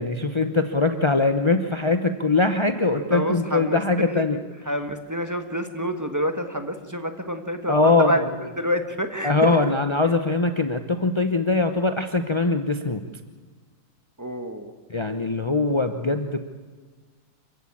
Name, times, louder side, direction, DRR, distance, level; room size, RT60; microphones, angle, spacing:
voice 1, 0.0-4.4 7.7-8.3 9.2-13.0 14.9-16.4, left 3 dB, 50° left, 7 dB, 0.3 m, -22 dB
voice 2, 2.9-3.8 4.1-4.3 4.7-9.7 14.2-14.7, equal, 10° right, 7 dB, 1.1 m, -28 dB
26.0 x 15.0 x 8.6 m, 1.5 s
omnidirectional pair, 2.0 m